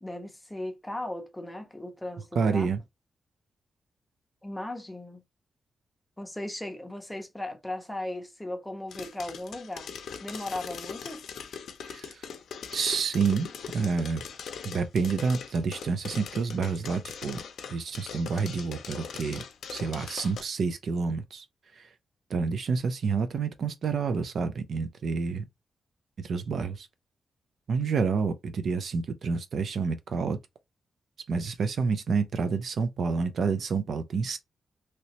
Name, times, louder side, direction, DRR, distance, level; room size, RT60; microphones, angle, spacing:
voice 1, 0.0-2.7 4.4-5.2 6.2-9.9 10.2-11.3, left 1 dB, 5° left, 0.7 m, -37 dB
voice 2, 2.4-2.8 11.9-12.3 12.7-14.2 14.6-17.4 17.7-19.4 19.7-21.4 21.7-21.9 22.3-25.4 26.2-26.9 27.7-30.4 31.3-34.4, right 5 dB, 55° right, 0.4 m, -29 dB
sound 1, 8.9-20.4, left 7 dB, 90° left, 0.5 m, -41 dB
3.0 x 2.8 x 2.8 m
wide cardioid pair, 180°, 0 cm